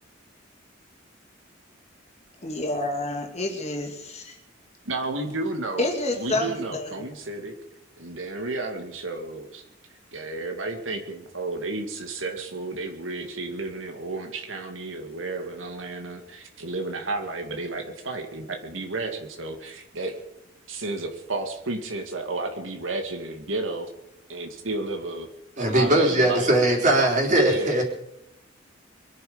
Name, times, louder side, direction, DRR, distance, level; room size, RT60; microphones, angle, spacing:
voice 1, 2.4-4.4 5.8-7.1, left 2 dB, 35° left, 3 dB, 2.5 m, -29 dB
voice 2, 4.9-5.9 6.2-7.6 8.0-9.7 10.1-20.1 20.7-23.9 24.3-25.3 25.6-26.5 27.3-27.9, right 2 dB, 80° right, 4 dB, 2.3 m, -32 dB
voice 3, 25.6-27.9, right 1 dB, 40° right, 0 dB, 4.2 m, -20 dB
23.5 x 11.0 x 5.2 m, 0.83 s
head